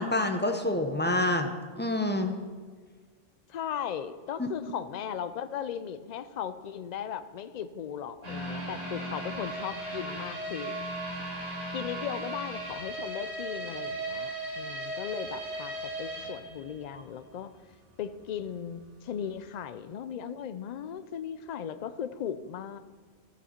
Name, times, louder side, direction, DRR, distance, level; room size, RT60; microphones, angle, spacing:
voice 1, 0.0-1.5 1.8-2.3 4.4-4.5 16.9-17.0, left 1 dB, 10° left, 5 dB, 0.6 m, -27 dB
voice 2, 3.5-10.7 11.7-17.5 18.0-22.8, left 8 dB, 55° left, 12 dB, 0.5 m, -37 dB
sound 1, 8.2-17.2 17.6-17.7 18.2-18.3, right 1 dB, 70° right, 3.2 m, -37 dB
14.0 x 7.0 x 4.4 m, 1.5 s
omnidirectional pair, 1.1 m